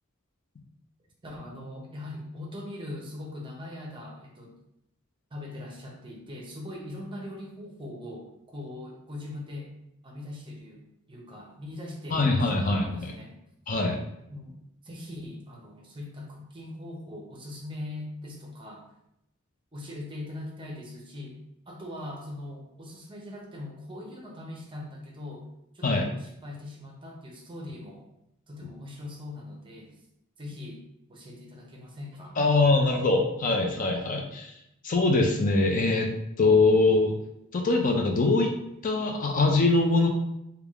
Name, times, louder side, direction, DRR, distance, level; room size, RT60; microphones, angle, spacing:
voice 1, 1.2-4.6 5.3-9.7 10.0-13.4 14.3-14.6 14.8-18.9 19.7-21.4 21.7-25.5 25.7-28.1 28.5-30.0 30.4-30.8 31.1-32.4, left 1 dB, 25° right, -1 dB, 0.6 m, -41 dB
voice 2, 12.1-13.1 13.7-14.0 25.8-26.1 32.4-34.5 34.8-36.1 36.4-37.1 37.5-38.5 38.8-40.1, left 3 dB, 40° left, 2 dB, 0.4 m, -23 dB
3.4 x 2.3 x 3.5 m, 0.82 s
head